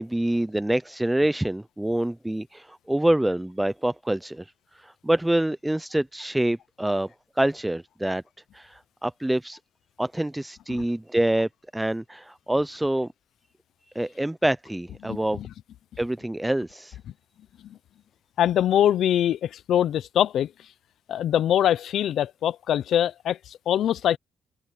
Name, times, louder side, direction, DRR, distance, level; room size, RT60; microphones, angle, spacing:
voice 1, 0.0-4.5 4.7-7.1 7.4-8.2 8.5-9.6 10.0-13.1 13.9-15.4 16.0-17.0, right 1 dB, 10° right, 0.6 m, -26 dB
voice 2, 15.1-15.5 17.6-17.8 18.4-20.5 21.1-24.2, left 10 dB, 70° left, 0.7 m, -23 dB
cardioid pair, 90°, 0 cm